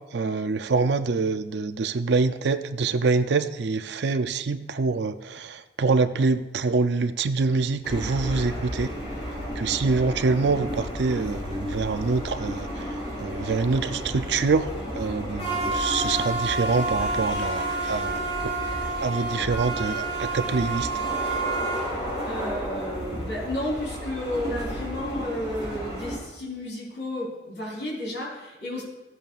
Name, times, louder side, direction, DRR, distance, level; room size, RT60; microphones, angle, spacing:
voice 1, 0.1-8.9 9.6-12.9 13.2-18.5 19.0-20.9, right 4 dB, 70° right, 10 dB, 0.5 m, -25 dB
sound 1, 7.8-26.1, right 1 dB, 40° left, 3.7 m, -30 dB
voice 2, 22.2-28.8, left 1 dB, 70° left, -6 dB, 3.7 m, -32 dB
15.5 x 7.9 x 2.4 m, 1.1 s
head